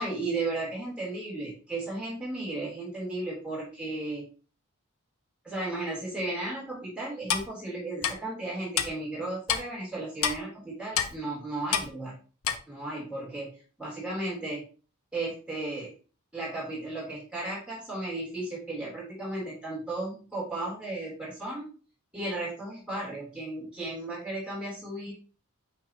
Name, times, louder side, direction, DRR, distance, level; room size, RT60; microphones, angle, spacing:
voice 1, 0.0-4.3 5.4-12.1 12.7-13.5 13.8-14.7 15.1-15.9 16.3-21.7 22.1-25.1, right 2 dB, 5° right, -7 dB, 3.6 m, -34 dB
Clock, 7.3-7.5 8.0-8.1 8.8-8.9 9.5-9.6 10.2-10.4 10.9-11.1 11.7-11.9 12.4-12.6, left 8 dB, 70° left, 0.7 m, -26 dB
8.7 x 3.6 x 2.9 m, 0.37 s
head